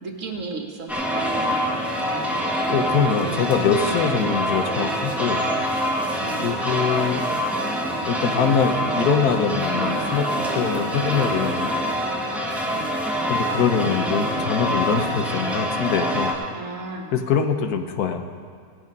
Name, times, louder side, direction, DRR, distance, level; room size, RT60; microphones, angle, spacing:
voice 1, 0.0-0.9 1.3-1.6 6.2-6.5 12.7-13.0 16.5-17.1, right 3 dB, 55° right, 2 dB, 1.5 m, -34 dB
sound 1, 0.9-16.3, equal, ahead, 1.4 m, -25 dB
voice 2, 2.7-5.4 6.4-7.2 8.1-10.3 10.5-11.7 13.3-16.3 17.1-18.2, left 6 dB, 75° left, 7 dB, 1.4 m, -23 dB
18.0 x 7.8 x 5.3 m, 2.2 s
omnidirectional pair, 1.7 m